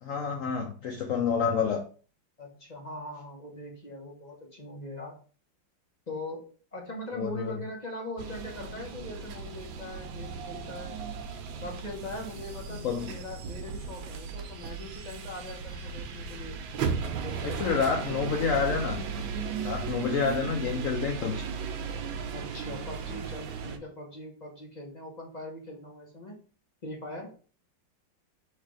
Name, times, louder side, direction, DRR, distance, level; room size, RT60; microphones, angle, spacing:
voice 1, 0.0-1.8 7.1-7.6 12.7-13.1 17.4-19.0 19.5-21.5, left 6 dB, 70° left, 1 dB, 0.8 m, -29 dB
voice 2, 2.4-5.2 6.1-11.0 11.6-16.6 17.2-18.1 22.3-26.4 26.8-27.3, left 1 dB, 35° left, -1 dB, 0.7 m, -41 dB
sound 1, 8.2-23.8, right 6 dB, 85° right, 1.4 m, -36 dB
3.3 x 3.3 x 4.8 m, 0.39 s
omnidirectional pair, 2.1 m